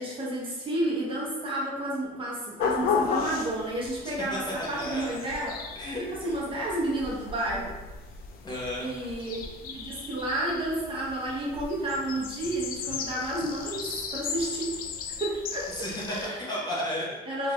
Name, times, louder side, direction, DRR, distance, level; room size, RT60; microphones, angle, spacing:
voice 1, 0.0-5.6 6.0-7.7 8.8-14.8 15.2-16.5 17.3-17.5, right 1 dB, 30° right, -5 dB, 0.8 m, -31 dB
sound 1, 2.6-16.3, left 5 dB, 60° left, 0.4 m, -35 dB
voice 2, 4.0-5.1 5.7-6.0 6.2-6.3 8.4-8.9 15.7-17.2 17.4-17.5, equal, 25° left, -6 dB, 1.0 m, -33 dB
3.0 x 2.5 x 3.0 m, 1.1 s
cardioid pair, 110°, 17 cm